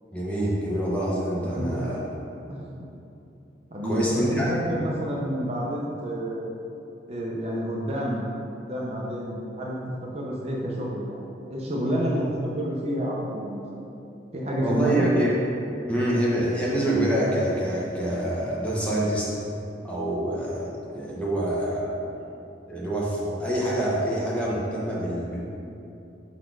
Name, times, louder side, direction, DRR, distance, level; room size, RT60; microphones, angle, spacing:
voice 1, 0.1-2.0 3.8-4.5 14.6-15.3 15.9-19.4 19.8-22.0 22.7-25.4, right 1 dB, 5° left, -6 dB, 0.8 m, -26 dB
voice 2, 1.4-1.8 2.5-2.6 3.7-6.5 7.1-8.3 8.7-11.2 11.5-13.9 14.3-15.1, equal, 35° right, -4 dB, 0.6 m, -29 dB
5.2 x 4.1 x 4.6 m, 2.7 s
head